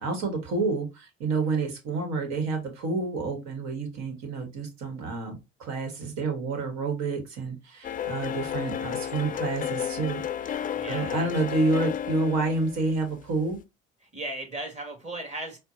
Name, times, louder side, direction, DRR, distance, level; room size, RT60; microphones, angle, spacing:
voice 1, 0.0-10.6 10.9-13.6, right 3 dB, 65° right, 1.3 m, -29 dB
sound 1, 7.8-13.6, left 9 dB, 30° left, 0.4 m, -33 dB
voice 2, 10.7-11.3 14.1-15.6, right 1 dB, 25° right, 1.8 m, -36 dB
4.4 x 2.1 x 2.6 m
hypercardioid pair, 65°, 29 cm